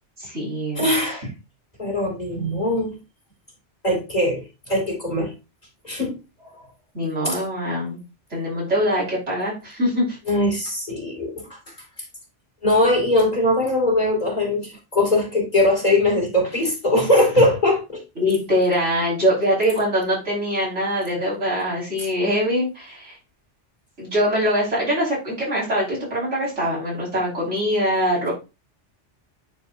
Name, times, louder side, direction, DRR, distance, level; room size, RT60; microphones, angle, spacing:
voice 1, 0.2-0.8 6.9-8.0 8.3-10.2 18.2-23.2 24.0-28.3, equal, 85° right, -6 dB, 5.4 m, -23 dB
voice 2, 0.8-1.3 1.8-2.9 3.8-5.3 5.8-6.2 7.2-7.4 10.3-11.5 12.6-18.0, left 1 dB, 35° left, 0 dB, 2.6 m, -21 dB
10.0 x 4.6 x 2.7 m, 0.27 s
omnidirectional pair, 1.2 m